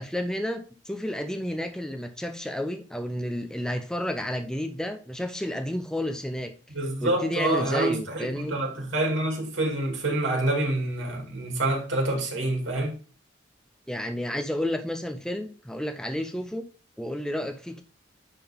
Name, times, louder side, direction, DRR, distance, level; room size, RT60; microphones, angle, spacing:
voice 1, 0.0-6.5 7.0-8.6 13.9-16.7 17.0-17.8, left 1 dB, 5° left, 0.6 m, -31 dB
voice 2, 6.7-12.9, right 2 dB, 80° right, 2.7 m, -27 dB
10.0 x 3.8 x 3.6 m
head